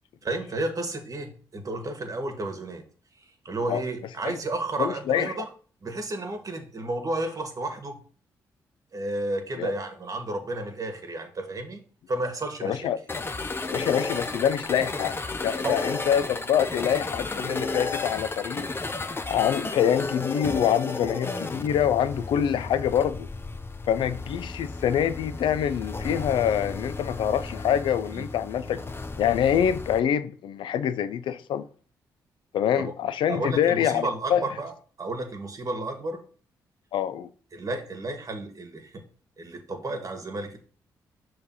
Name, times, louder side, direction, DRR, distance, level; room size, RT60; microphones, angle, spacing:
voice 1, 0.2-2.8 3.2-5.4 5.8-8.0 8.9-11.8 12.1-12.8 15.6-15.9 28.1-28.2 32.8-32.9 33.3-34.7 35.0-36.2 37.5-39.0 39.4-40.6, right 2 dB, 45° right, 1.6 m, -32 dB
voice 2, 4.8-5.4 9.6-9.7 12.6-13.0 13.7-15.2 15.4-18.7 19.3-23.3 23.9-28.8 29.2-31.7 32.5-34.4 36.9-37.3, left 9 dB, 75° left, 0.5 m, -25 dB
sound 1, 13.1-30.0, left 3 dB, 25° left, 0.7 m, -33 dB
5.9 x 3.4 x 5.5 m
supercardioid pair, 50°, 8 cm